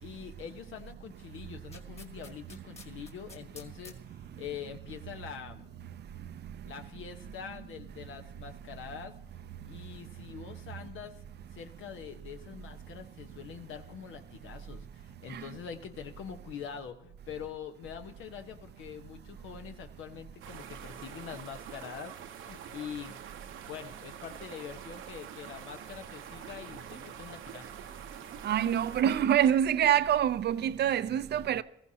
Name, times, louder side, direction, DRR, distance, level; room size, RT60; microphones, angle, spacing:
voice 1, 0.0-5.8 6.6-9.1 9.6-11.2 11.5-23.2 23.7-27.7, left 8 dB, 80° left, 1.1 m, -44 dB
sound 1, 1.7-4.0 5.6-5.7, left 4 dB, 30° left, 1.9 m, -50 dB
sound 2, 20.4-29.0, right 9 dB, 75° right, 0.9 m, -46 dB
voice 2, 28.4-31.6, right 10 dB, 55° right, 0.5 m, -26 dB
20.0 x 14.5 x 2.8 m
cardioid pair, 90°, 20 cm